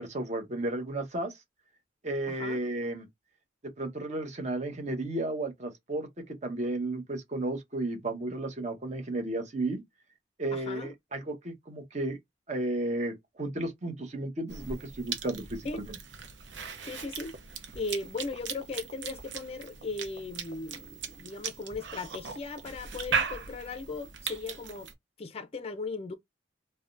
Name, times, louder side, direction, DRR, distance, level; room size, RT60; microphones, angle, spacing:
voice 1, 0.0-1.4 2.0-3.1 3.8-9.8 10.4-12.2 12.5-16.0, right 2 dB, 40° right, 0.8 m, -33 dB
voice 2, 2.3-2.6 10.5-10.9 15.6-15.8 16.8-17.3 17.7-24.9 25.2-26.1, left 3 dB, 35° left, 0.4 m, -37 dB
Cough / Chewing mastication, 14.5-24.9, right 6 dB, 75° right, 0.7 m, -38 dB
3.4 x 2.1 x 2.5 m
head